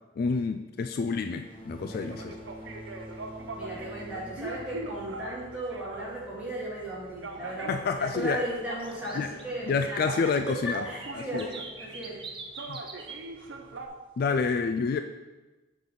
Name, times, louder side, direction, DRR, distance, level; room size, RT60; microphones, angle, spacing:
voice 1, 0.2-2.3 7.7-8.4 9.2-9.3 9.7-10.8 11.3-11.5 12.7-12.8 14.2-15.0, left 4 dB, 55° left, 7 dB, 0.3 m, -28 dB
sound 1, 0.8-0.9 1.3-1.5 1.8-2.3 2.7-3.9 4.3-4.4 4.9-5.0 5.6-5.7 6.0-6.1 6.5-7.3 7.6-13.2 13.5-13.9, right 4 dB, 25° right, 0.6 m, -45 dB
sound 2, 1.4-6.8, equal, 30° left, 1.1 m, -46 dB
sound 3, 1.7-13.9, right 3 dB, 80° right, 0.7 m, -42 dB
voice 2, 3.5-12.2, right 1 dB, 5° right, -8 dB, 2.3 m, -36 dB
6.3 x 4.0 x 5.3 m, 1.1 s
head